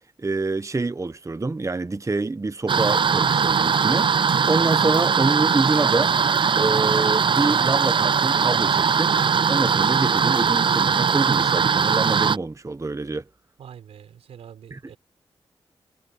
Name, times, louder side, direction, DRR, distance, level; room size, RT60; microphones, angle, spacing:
voice 1, 0.2-6.1 6.5-9.1 9.5-13.2 14.7-14.8, right 3 dB, 30° right, 1.0 m, -26 dB
sound 1, 2.7-12.4, right 6 dB, 55° right, 0.5 m, -20 dB
voice 2, 13.6-15.0, right 8 dB, 90° right, 4.7 m, -44 dB
cardioid pair, 45°, 10 cm